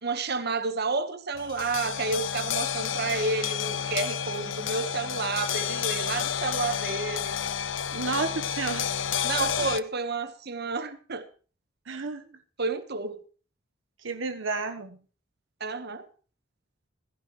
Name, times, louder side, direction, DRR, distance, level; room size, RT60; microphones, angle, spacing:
voice 1, 0.0-7.4 9.2-11.3 12.6-13.2 15.6-16.1, right 3 dB, 55° right, 1.3 m, -30 dB
sound 1, 1.3-9.8, left 8 dB, 70° left, 0.7 m, -30 dB
voice 2, 7.9-9.0 11.9-12.3 14.0-15.0, right 4 dB, 85° right, 1.2 m, -31 dB
16.5 x 14.5 x 3.2 m
head